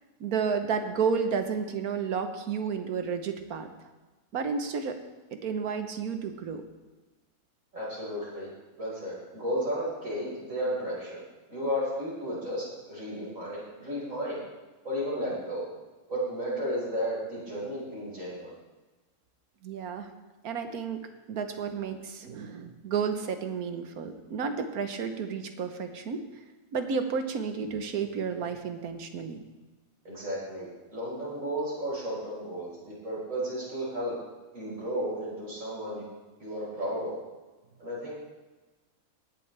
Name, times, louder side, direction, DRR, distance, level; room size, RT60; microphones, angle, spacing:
voice 1, 0.2-3.7 4.3-5.0 5.3-6.6 19.6-20.1 20.4-26.2 26.7-29.4, right 6 dB, 80° right, 7 dB, 1.5 m, -31 dB
voice 2, 7.7-8.5 8.8-11.2 11.5-14.4 14.8-15.7 16.1-18.5 30.0-34.2 34.5-36.0 36.4-37.2 37.8-38.1, equal, 60° right, -6 dB, 5.4 m, -33 dB
17.5 x 11.0 x 3.4 m, 1.2 s
omnidirectional pair, 1.6 m